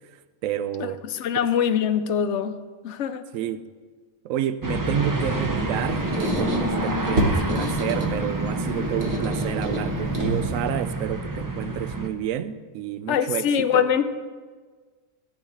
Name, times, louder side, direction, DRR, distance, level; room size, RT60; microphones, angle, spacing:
voice 1, 0.4-1.0 3.3-3.6 4.2-13.9, right 10 dB, 80° right, 1.0 m, -30 dB
voice 2, 1.2-2.6 2.8-3.2 13.1-14.0, left 8 dB, 65° left, 0.8 m, -23 dB
sound 1, 4.6-12.1, right 1 dB, 20° right, 0.6 m, -27 dB
Squeak, 5.5-10.7, right 1 dB, 50° right, 1.5 m, -29 dB
14.0 x 4.7 x 7.2 m
omnidirectional pair, 1.4 m